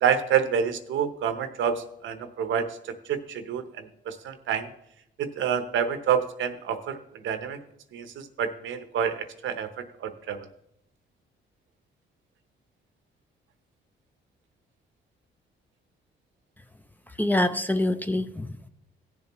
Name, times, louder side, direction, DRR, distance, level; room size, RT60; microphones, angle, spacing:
voice 1, 0.0-2.7 3.1-4.7 5.2-7.0 7.2-7.6 7.9-10.4, right 8 dB, 75° right, 10 dB, 0.9 m, -28 dB
voice 2, 17.2-18.7, left 1 dB, 10° left, 10 dB, 0.6 m, -25 dB
16.5 x 7.0 x 3.1 m, 0.77 s
cardioid pair, 90°, 20 cm